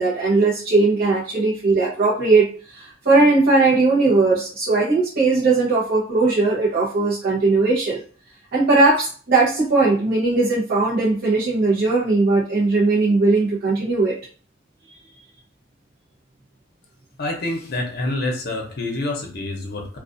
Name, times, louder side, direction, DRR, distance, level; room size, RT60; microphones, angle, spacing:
voice 1, 0.0-8.0 8.5-14.2, right 3 dB, 55° right, -8 dB, 0.8 m, -18 dB
voice 2, 17.2-20.0, left 2 dB, 55° left, 2 dB, 0.7 m, -27 dB
2.4 x 2.4 x 2.5 m, 0.42 s
head